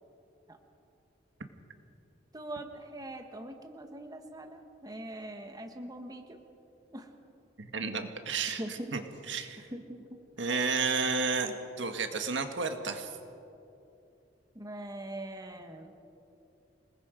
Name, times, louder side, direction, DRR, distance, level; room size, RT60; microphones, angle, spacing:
voice 1, 2.3-6.4 6.9-7.1 8.5-8.9 9.7-10.0 14.5-15.9, right 1 dB, 20° right, 5 dB, 1.5 m, -42 dB
voice 2, 7.6-9.0 9.3-9.6 10.4-13.1, right 4 dB, 85° right, 6 dB, 1.7 m, -32 dB
27.5 x 19.5 x 5.2 m, 2.7 s
head